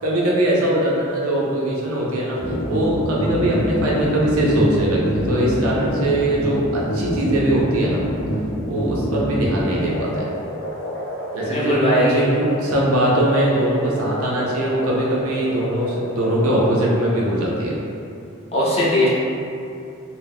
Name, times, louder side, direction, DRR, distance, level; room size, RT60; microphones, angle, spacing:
voice 1, 0.0-2.4 2.7-8.0 8.7-10.3 11.3-17.8, right 1 dB, 90° right, -4 dB, 0.6 m, -21 dB
sound 1, 2.4-17.2, equal, 70° left, 0.7 m, -26 dB
voice 2, 11.4-12.2 18.5-19.1, equal, 30° left, -7 dB, 0.5 m, -19 dB
2.2 x 2.2 x 3.5 m, 2.6 s
head